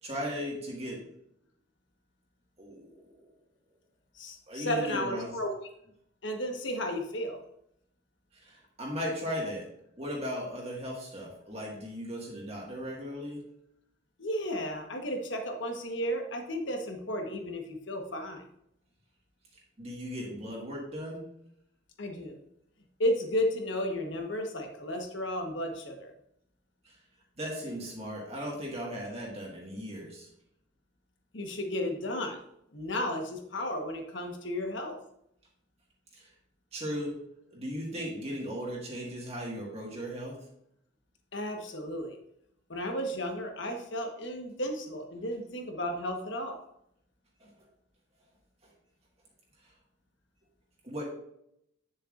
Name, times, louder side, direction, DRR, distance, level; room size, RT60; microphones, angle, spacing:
voice 1, 0.0-1.0 2.6-3.2 4.5-5.4 8.3-9.7 10.0-13.4 19.8-21.2 26.8-27.0 27.4-30.3 36.1-36.3 36.7-37.2 37.5-40.4 47.4-47.5 50.8-51.0, equal, 30° right, -3 dB, 1.8 m, -37 dB
voice 2, 4.1-5.5 6.2-7.4 14.2-18.4 22.0-22.4 23.0-26.1 31.3-32.4 32.7-35.0 41.3-42.2 42.7-46.6, left 1 dB, 60° left, 3 dB, 1.3 m, -33 dB
9.7 x 7.1 x 2.5 m, 0.75 s
head